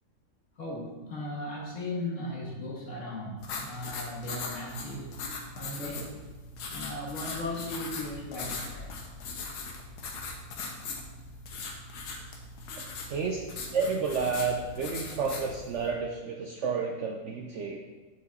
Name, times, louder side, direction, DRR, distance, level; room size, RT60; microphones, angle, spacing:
voice 1, 0.6-5.2 5.5-6.2 6.7-8.9, left 1 dB, 50° left, -4 dB, 2.0 m, -37 dB
sound 1, 3.4-15.9, left 3 dB, 85° left, 1.5 m, -40 dB
voice 2, 13.1-13.4 13.7-17.8, right 5 dB, 65° right, 2 dB, 0.8 m, -30 dB
7.3 x 6.3 x 4.0 m, 1.3 s
omnidirectional pair, 1.7 m